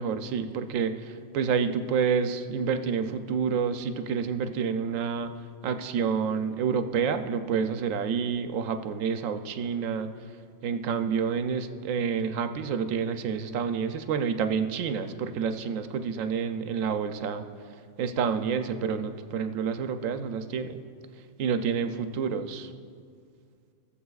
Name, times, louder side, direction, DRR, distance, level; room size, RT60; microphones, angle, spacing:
voice 1, 0.0-5.3 5.6-10.1 10.6-17.4 18.0-20.8 21.4-22.7, right 6 dB, 85° right, 8 dB, 1.0 m, -28 dB
20.5 x 7.3 x 2.3 m, 2.2 s
omnidirectional pair, 1.3 m